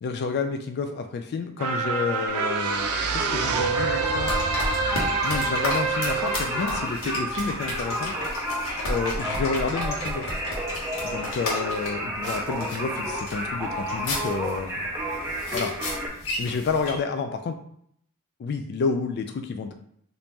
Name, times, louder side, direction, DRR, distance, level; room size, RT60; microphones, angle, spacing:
voice 1, 0.0-4.4 5.2-8.1 8.9-10.3 11.0-14.8 15.5-15.7 16.4-17.6 18.4-19.7, left 4 dB, 50° left, 6 dB, 0.3 m, -30 dB
sound 1, 1.6-8.2 8.7-8.8, right 5 dB, 80° right, 0.5 m, -28 dB
Singing, 2.3-16.1, equal, 10° right, 0.5 m, -31 dB
sound 2, 4.2-17.0, left 1 dB, 65° left, 1.1 m, -33 dB
2.9 x 2.6 x 3.5 m, 0.68 s
head